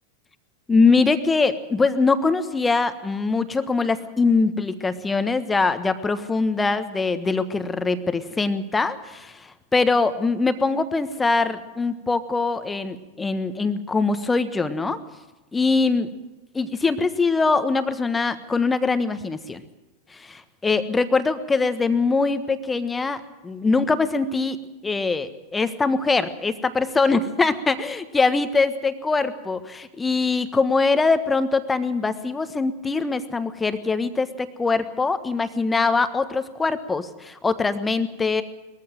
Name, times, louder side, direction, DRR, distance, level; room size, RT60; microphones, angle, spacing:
voice 1, 0.7-15.0 15.5-16.1 16.5-19.6 20.1-24.6 24.8-38.4, left 4 dB, 10° left, 12 dB, 1.3 m, -22 dB
21.0 x 14.5 x 9.1 m, 1.1 s
figure-of-eight pair, 90°, 0 cm